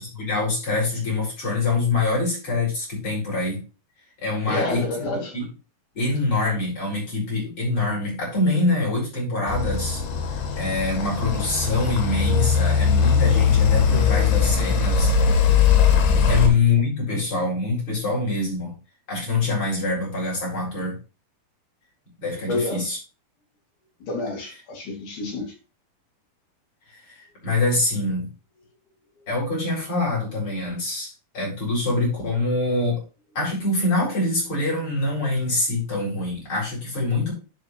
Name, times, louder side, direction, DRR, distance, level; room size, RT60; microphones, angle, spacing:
voice 1, 0.0-3.6 4.2-5.5 5.9-10.0 10.5-15.1 16.0-18.7 19.1-21.0 22.2-23.0 26.9-28.3 29.3-33.0 33.3-37.3, left 3 dB, 35° left, 4.8 m, -25 dB
voice 2, 4.5-5.3 16.3-16.5 22.5-22.9 24.0-25.5, left 2 dB, 55° left, 3.8 m, -29 dB
sound 1, 9.5-16.5, left 6 dB, 90° left, 3.7 m, -20 dB
11.5 x 5.1 x 3.2 m
omnidirectional pair, 4.5 m